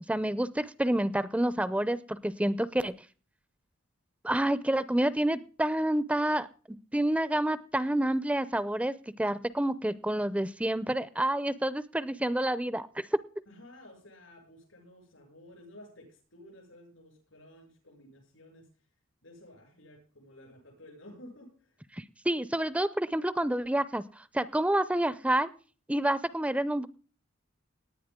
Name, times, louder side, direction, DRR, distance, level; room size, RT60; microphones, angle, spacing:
voice 1, 0.1-2.9 4.2-6.5 6.9-13.2 21.9-24.0 24.3-25.5 25.9-26.9, right 1 dB, 5° right, 15 dB, 0.5 m, -28 dB
voice 2, 13.5-18.7 19.2-21.8, left 1 dB, 85° left, 1 dB, 6.8 m, -53 dB
18.5 x 10.5 x 3.7 m, 0.39 s
head